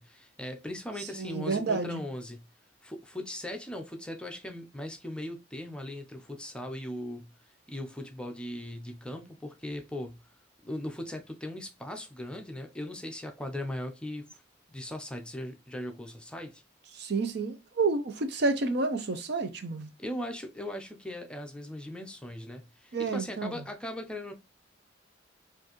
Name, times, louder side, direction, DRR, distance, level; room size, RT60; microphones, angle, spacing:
voice 1, 0.0-2.4 2.8-7.3 7.7-10.2 10.6-14.4 14.7-16.6 20.0-24.3, left 1 dB, 5° left, 0.6 m, -39 dB
voice 2, 1.2-2.0 16.9-19.9 22.9-23.6, right 3 dB, 60° right, 0.6 m, -30 dB
4.4 x 2.6 x 2.9 m
head